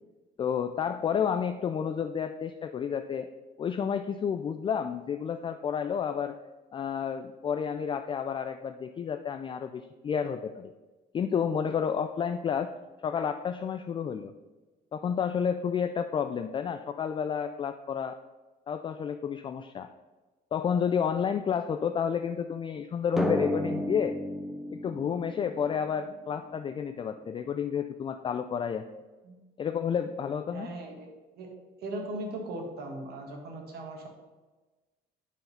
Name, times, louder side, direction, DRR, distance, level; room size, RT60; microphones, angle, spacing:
voice 1, 0.4-3.3 3.6-6.4 6.7-10.7 11.1-12.7 13.0-14.3 14.9-18.2 18.7-19.9 20.5-24.2 24.7-28.8 29.6-30.7, left 7 dB, 30° left, 8 dB, 0.3 m, -30 dB
Drum, 23.2-26.5, left 1 dB, 5° right, 0.8 m, -32 dB
voice 2, 30.5-31.1 31.3-31.5 31.8-34.1, right 1 dB, 70° right, 2 dB, 1.8 m, -38 dB
9.2 x 3.9 x 5.6 m, 1.2 s
cardioid pair, 110°, 17 cm